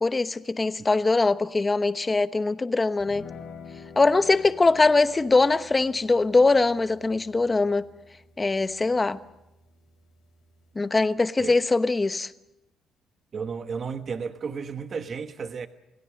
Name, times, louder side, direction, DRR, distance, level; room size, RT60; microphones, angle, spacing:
voice 1, 0.0-3.2 4.0-7.8 8.4-9.2 10.8-12.3, left 3 dB, 25° left, 1.0 m, -22 dB
sound 1, 3.0-10.8, left 5 dB, 65° left, 5.4 m, -49 dB
voice 2, 13.3-15.7, right 5 dB, 50° right, 1.3 m, -33 dB
28.0 x 17.0 x 6.5 m
cardioid pair, 90°, 0 cm